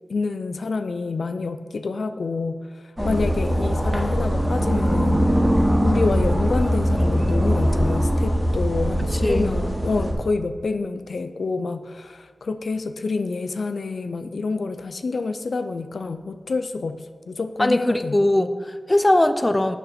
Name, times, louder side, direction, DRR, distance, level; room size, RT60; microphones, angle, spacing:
voice 1, 0.1-5.2 5.8-18.2, left 3 dB, 90° left, 9 dB, 0.4 m, -27 dB
sound 1, 3.0-10.1, equal, 30° right, 1.9 m, -21 dB
voice 2, 9.2-9.6 17.6-19.8, left 1 dB, 25° left, 10 dB, 0.5 m, -20 dB
6.7 x 6.3 x 5.8 m, 1.5 s
wide cardioid pair, 55°, 0 cm